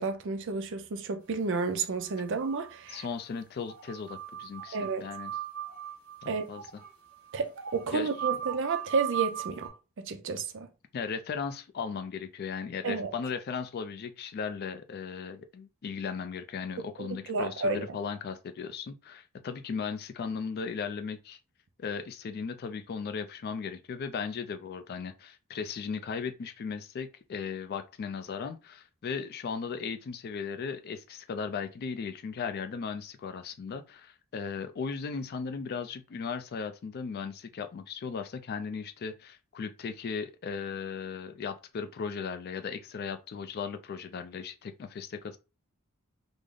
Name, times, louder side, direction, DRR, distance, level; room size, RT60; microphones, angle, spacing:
voice 1, 0.0-3.1 4.7-5.0 6.3-6.5 7.3-9.7 10.0-10.7 12.8-13.1 17.0-17.8, right 4 dB, 55° right, 0.5 m, -31 dB
sound 1, 2.1-3.1 3.4-3.5 3.7-9.7, right 11 dB, 75° right, 1.1 m, -38 dB
voice 2, 2.9-5.3 6.2-6.7 7.9-8.1 10.9-21.4 21.8-45.4, left 5 dB, 45° left, 0.3 m, -37 dB
3.3 x 2.0 x 3.7 m
head